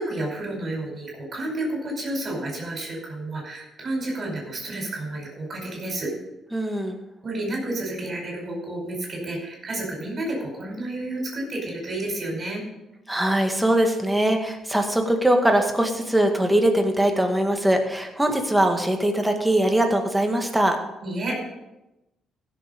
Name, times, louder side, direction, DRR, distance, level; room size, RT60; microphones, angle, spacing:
voice 1, 0.0-6.1 7.2-12.6 21.0-21.4, right 1 dB, 40° right, -1 dB, 5.2 m, -30 dB
voice 2, 6.5-7.0 13.1-20.8, right 1 dB, 10° right, 4 dB, 1.9 m, -21 dB
15.5 x 7.2 x 5.2 m, 0.96 s
cardioid pair, 90°, 0 cm